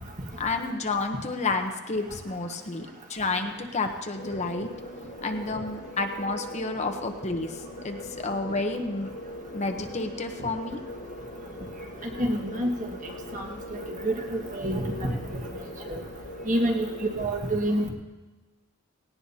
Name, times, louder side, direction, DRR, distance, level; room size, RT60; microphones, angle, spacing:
voice 1, 0.4-4.7 5.2-9.1 9.5-10.8, left 3 dB, 35° left, 5 dB, 0.9 m, -30 dB
sound 1, 4.1-17.3, left 1 dB, 60° left, 1.9 m, -41 dB
voice 2, 12.0-13.5 13.7-15.2 15.6-16.0 16.4-17.9, right 1 dB, 40° right, 1 dB, 1.7 m, -28 dB
18.0 x 17.5 x 2.8 m, 1.2 s
head